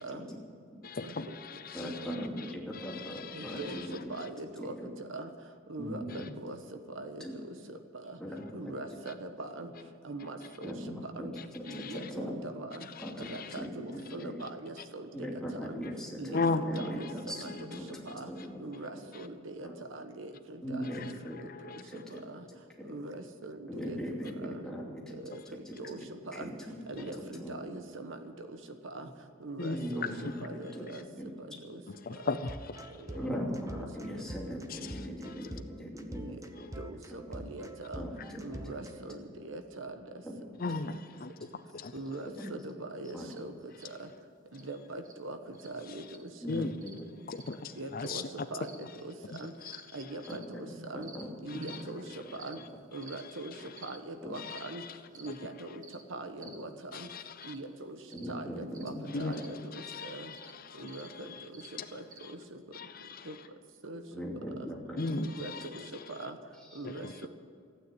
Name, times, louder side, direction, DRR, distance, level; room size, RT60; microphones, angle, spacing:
voice 1, 0.0-0.3 0.9-1.6 2.0-2.3 3.3-11.3 11.6-12.9 13.1-15.8 16.2-18.3 18.6-21.1 21.4-22.5 22.8-24.7 25.1-26.5 26.9-32.4 32.9-33.3 33.8-34.4 34.8-35.1 36.1-38.1 38.4-40.3 40.6-40.8 41.9-44.1 44.4-46.7 47.7-51.1 51.4-52.6 52.9-60.4 60.7-63.6 63.8-64.1 64.6-64.7 65.2-67.3, right 2 dB, 70° right, 1.2 m, -43 dB
voice 2, 0.8-1.9 2.9-3.6 11.7-12.0 13.2-13.5 16.3-16.6 17.5-17.6 21.5-21.8 29.6-29.8 30.2-30.3 32.1-32.9 34.7-35.0 36.6-36.7 40.6-41.3 41.7-41.9 46.5-46.7 47.3-48.2 51.7-51.8 54.4-54.6 56.9-57.5 59.1-59.3 59.8-61.0 62.7-63.3 65.0-65.6 67.0-67.1, left 3 dB, 45° left, 0.6 m, -36 dB
voice 3, 1.7-4.1 4.6-4.9 5.8-6.2 7.2-7.4 8.2-8.7 10.6-12.4 13.0-13.3 13.6-14.4 15.1-18.7 19.6-19.7 20.6-21.4 21.9-22.2 22.8-22.9 23.7-25.2 25.5-26.0 26.3-27.6 29.7-30.3 30.7-30.9 31.2-31.3 33.1-36.3 36.6-36.7 37.3-37.4 37.9-39.2 40.2-40.4 40.7-40.8 42.4-42.5 43.1-43.3 46.4-47.0 50.3-50.7 50.9-51.8 54.2-54.3 56.4-56.5 58.1-59.5 64.1-65.3 65.6-65.7 66.7-66.8, equal, 5° left, 2.7 m, -40 dB
sound 1, 32.3-39.1, right 1 dB, 15° right, 0.9 m, -45 dB
sound 2, 43.3-43.4 43.8-43.9 44.5-44.7 45.0-45.2 45.5-45.7 46.1-46.3 46.8-47.0 47.4-47.5 48.0-48.2 48.6-48.8 49.6-49.8 50.2-50.4 51.0-51.2 51.6-51.8 52.4-52.6 53.0-53.2 53.8-54.0 54.5-54.7 55.1-55.3 55.8-56.0 56.4-56.6 57.4-57.6 58.1-58.3 58.7-58.9 59.3-59.5 60.3-60.5 60.9-61.1 61.5-61.7 62.1-62.2, right 5 dB, 40° right, 1.5 m, -52 dB
15.0 x 9.2 x 9.6 m
head